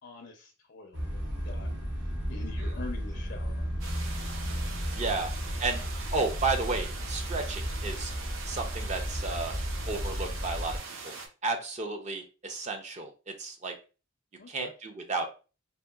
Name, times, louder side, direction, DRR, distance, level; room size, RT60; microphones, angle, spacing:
voice 1, 0.0-4.7 5.1-5.5 14.4-14.7, left 3 dB, 60° left, 2 dB, 0.4 m, -46 dB
sound 1, 0.9-10.8, equal, 65° right, 1.1 m, -34 dB
sound 2, 3.8-11.3, right 4 dB, 90° right, 0.6 m, -42 dB
voice 2, 5.0-5.3 5.6-5.8 6.1-8.1 8.5-9.6 9.9-10.8 11.4-13.7 14.5-15.3, right 3 dB, 35° right, 5 dB, 0.5 m, -32 dB
2.7 x 2.7 x 2.2 m, 0.33 s
head